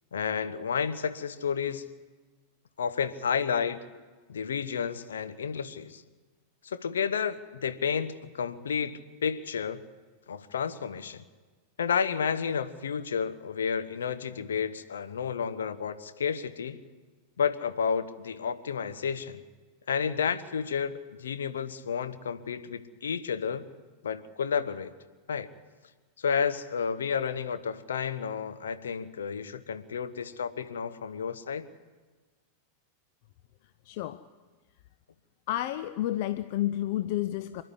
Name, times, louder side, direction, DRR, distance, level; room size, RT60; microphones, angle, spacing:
voice 1, 0.1-1.8 2.8-3.8 4.3-6.0 6.6-9.8 10.3-11.2 11.8-16.8 17.4-19.4 19.9-23.7 24.0-24.9 25.3-25.5 26.2-31.6, left 6 dB, 65° left, 11 dB, 1.1 m, -31 dB
voice 2, 33.9-34.2 35.5-37.6, left 13 dB, 50° left, 12 dB, 0.6 m, -30 dB
26.0 x 11.0 x 9.9 m, 1.4 s
figure-of-eight pair, 90°, 0 cm